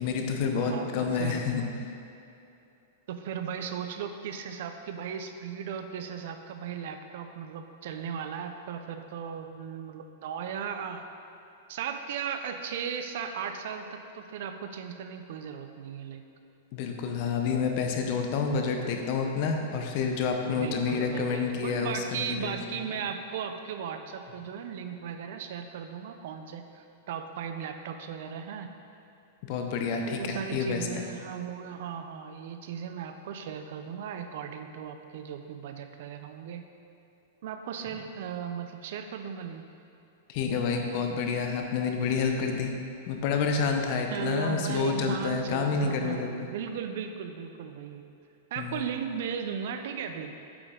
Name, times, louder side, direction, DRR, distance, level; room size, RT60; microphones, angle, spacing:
voice 1, 0.0-1.6 16.7-22.8 29.4-30.9 40.3-42.7 43.1-46.3 48.6-48.8, left 5 dB, 45° left, 3 dB, 0.7 m, -29 dB
voice 2, 0.5-1.4 3.1-11.0 11.7-16.2 20.4-28.7 30.0-36.7 37.4-39.7 44.1-48.0 48.5-50.3, right 7 dB, 60° right, 7 dB, 0.5 m, -36 dB
8.2 x 5.1 x 3.7 m, 2.8 s
supercardioid pair, 160°, 0 cm